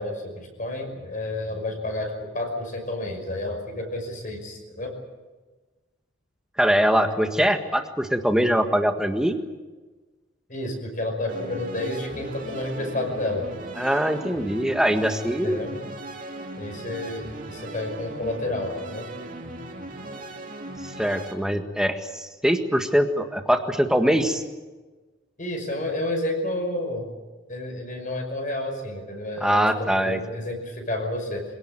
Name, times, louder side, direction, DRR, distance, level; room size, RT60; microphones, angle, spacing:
voice 1, 0.0-4.9 10.5-13.4 15.4-15.7 16.6-19.1 25.4-27.1 27.5-31.5, left 1 dB, 40° left, 3 dB, 5.7 m, -30 dB
voice 2, 6.6-9.4 13.8-15.6 20.8-24.4 29.4-30.2, equal, 5° right, 5 dB, 1.6 m, -22 dB
sound 1, 11.3-21.4, right 2 dB, 45° right, 2.7 m, -38 dB
25.5 x 17.5 x 9.0 m, 1.3 s
head